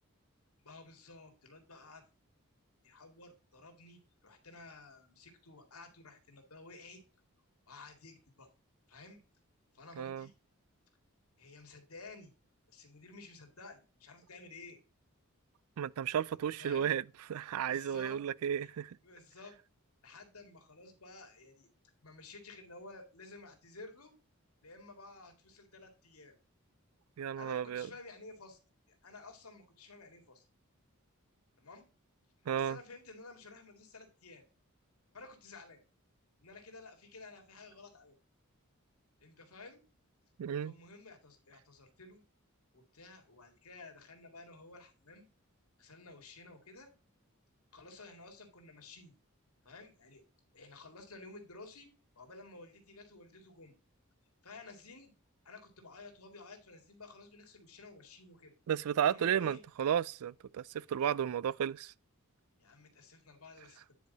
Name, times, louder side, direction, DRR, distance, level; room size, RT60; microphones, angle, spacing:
voice 1, 0.6-2.0 2.8-7.0 7.7-8.5 8.9-9.2 9.7-10.3 11.4-12.3 12.7-14.8 16.6-17.0 17.6-18.2 18.5-18.7 19.0-19.6 20.0-21.7 22.0-24.1 24.6-26.3 27.4-28.6 28.9-30.4 31.6-31.8 32.5-34.4 35.1-35.8 36.4-38.1 39.2-39.8 40.6-42.2 42.7-45.3 45.8-46.9 47.7-49.1 49.6-50.2 50.5-51.9 52.2-53.8 54.4-55.1 55.4-58.5 59.1-59.6 62.6-63.8, left 3 dB, 85° left, 2.2 m, -53 dB
voice 2, 10.0-10.3 15.8-17.0 17.3-19.0 27.2-27.9 32.5-32.8 40.4-40.7 58.7-61.9, right 9 dB, 80° right, 0.3 m, -33 dB
9.5 x 4.8 x 3.9 m
head